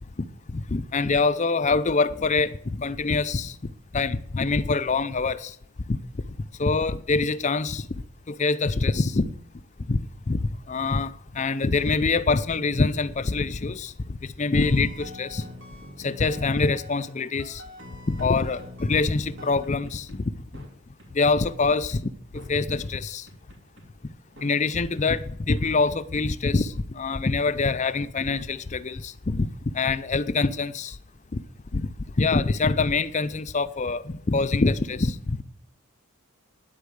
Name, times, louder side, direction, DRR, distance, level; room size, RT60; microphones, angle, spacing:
voice 1, 0.5-3.6 3.9-5.5 5.9-6.0 6.6-7.9 8.3-9.3 9.9-10.0 10.3-15.4 16.0-17.6 18.1-20.2 21.1-23.3 24.4-29.5 29.7-31.0 31.3-31.4 31.7-31.9 32.2-35.4, left 3 dB, 35° left, 0.5 m, -25 dB
sound 1, 14.5-17.1 17.4-20.2 20.5-20.7 21.0-21.1 21.4-22.0 22.4-22.5 22.8-22.9 23.3-23.8 24.4-24.5 25.0-25.1 25.6-26.3, left 1 dB, 60° right, 2.6 m, -44 dB
10.0 x 8.3 x 7.9 m
head